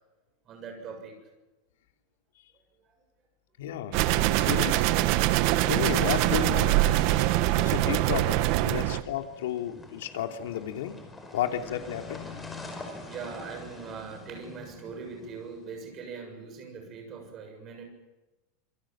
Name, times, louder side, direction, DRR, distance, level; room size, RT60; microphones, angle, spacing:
voice 1, 0.5-1.2 7.2-7.8 12.9-17.8, right 5 dB, 25° right, 4 dB, 7.0 m, -42 dB
voice 2, 3.6-4.8 5.7-11.0 11.3-12.2, left 10 dB, 90° left, 4 dB, 3.0 m, -33 dB
sound 1, 3.9-9.0, right 15 dB, 45° right, 1.2 m, -24 dB
sound 2, 8.7-15.7, left 3 dB, 10° left, 5.0 m, -45 dB
26.5 x 24.5 x 7.5 m, 1.1 s
supercardioid pair, 170°, 0 cm